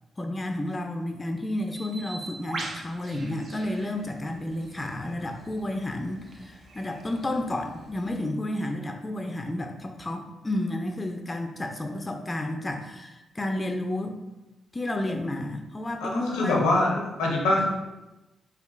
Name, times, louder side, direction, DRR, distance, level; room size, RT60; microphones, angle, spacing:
voice 1, 0.2-14.2 14.7-17.6, left 1 dB, 30° left, 3 dB, 0.4 m, -31 dB
Bird, 1.7-8.2, right 2 dB, 55° right, 0.4 m, -43 dB
voice 2, 16.0-17.8, left 2 dB, 85° left, -2 dB, 0.6 m, -24 dB
3.6 x 2.3 x 2.5 m, 1.0 s
hypercardioid pair, 45°, 0 cm